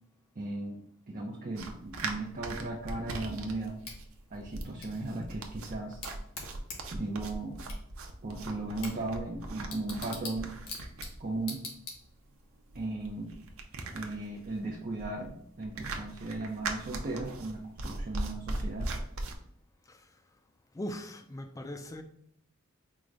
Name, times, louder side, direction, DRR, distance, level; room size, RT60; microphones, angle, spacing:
voice 1, 0.4-0.8 1.1-3.8 4.3-6.0 6.9-7.6 8.2-10.5 11.2-11.6 12.7-13.3 13.9-18.9, right 2 dB, 40° right, 0.5 m, -36 dB
sound 1, 1.5-19.3, right 2 dB, 85° right, 0.6 m, -40 dB
Bicycle / Tick, 3.8-12.4, left 3 dB, 80° left, 1.2 m, -46 dB
voice 2, 20.7-22.0, left 1 dB, 15° left, 0.3 m, -40 dB
4.6 x 2.1 x 3.8 m
head